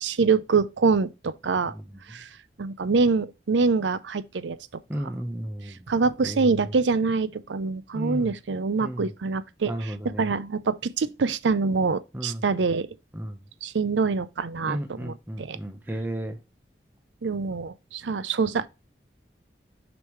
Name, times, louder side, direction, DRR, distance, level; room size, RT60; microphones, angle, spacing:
voice 1, 0.0-1.7 2.1-2.3 2.6-4.6 5.9-12.9 13.6-15.6 17.2-18.7, right 4 dB, 85° right, 0.5 m, -25 dB
voice 2, 4.9-5.8 6.2-6.5 7.9-8.3 8.8-9.1 9.7-10.3 12.1-12.4 13.1-13.4 14.6-16.4, right 1 dB, 10° right, 0.6 m, -33 dB
6.4 x 5.2 x 3.2 m
head